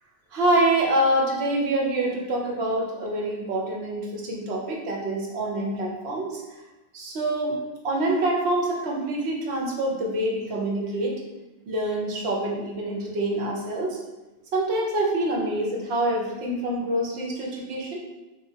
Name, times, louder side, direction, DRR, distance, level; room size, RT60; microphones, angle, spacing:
voice 1, 0.3-6.4 6.9-7.6 7.8-11.2 11.7-14.0 14.5-18.0, right 1 dB, 70° right, -1 dB, 0.9 m, -26 dB
3.1 x 2.3 x 2.7 m, 1.1 s
omnidirectional pair, 1.2 m